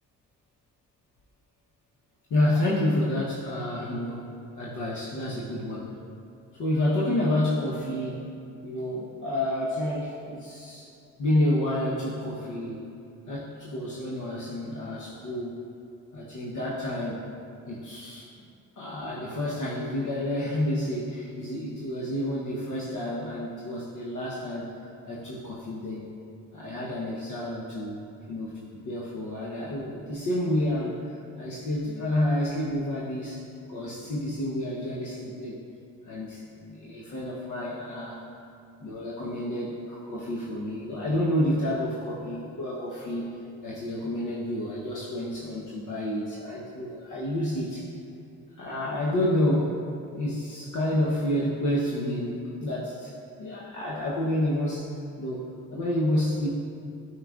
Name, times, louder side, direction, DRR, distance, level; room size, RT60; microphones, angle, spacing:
voice 1, 2.3-4.2 4.6-5.9 6.6-8.2 8.6-10.9 11.2-12.9 13.3-15.6 16.1-17.2 17.7-18.2 18.8-24.7 25.1-26.1 26.5-28.0 28.3-33.4 33.7-35.6 36.1-38.2 38.8-43.3 43.6-47.9 48.5-49.7 50.1-53.1 53.4-54.9 55.2-56.5, left 1 dB, 60° left, -5 dB, 1.0 m, -29 dB
8.9 x 4.8 x 2.4 m, 2.5 s
hypercardioid pair, 50°, 34 cm